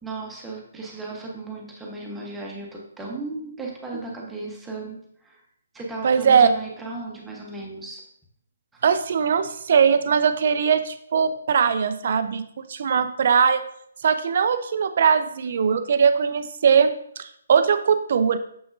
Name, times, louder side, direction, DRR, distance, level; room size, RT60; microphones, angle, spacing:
voice 1, 0.0-5.4 5.7-8.0, right 3 dB, 5° right, -3 dB, 1.2 m, -35 dB
voice 2, 6.0-6.5 8.8-12.4 12.7-13.6 14.0-18.4, right 6 dB, 50° right, 11 dB, 0.5 m, -20 dB
7.1 x 5.9 x 2.7 m, 0.69 s
figure-of-eight pair, 135°, 0 cm